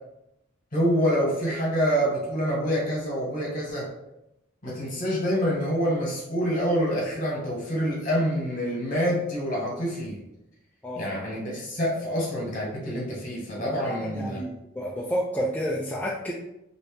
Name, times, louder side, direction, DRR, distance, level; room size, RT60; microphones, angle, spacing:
voice 1, 0.7-3.9 4.6-10.2 11.0-14.4, equal, 40° left, -3 dB, 1.3 m, -26 dB
voice 2, 10.8-11.2 13.5-16.3, equal, 10° left, -4 dB, 0.3 m, -30 dB
2.9 x 2.7 x 3.3 m, 0.87 s
head